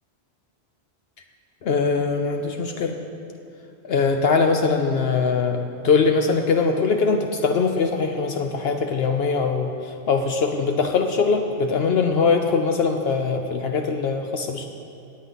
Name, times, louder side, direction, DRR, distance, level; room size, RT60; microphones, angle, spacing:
voice 1, 1.6-2.9 3.8-5.6 5.8-9.7 10.1-14.6, left 4 dB, 70° left, 5 dB, 0.9 m, -21 dB
18.5 x 8.4 x 4.0 m, 2.8 s
omnidirectional pair, 1.1 m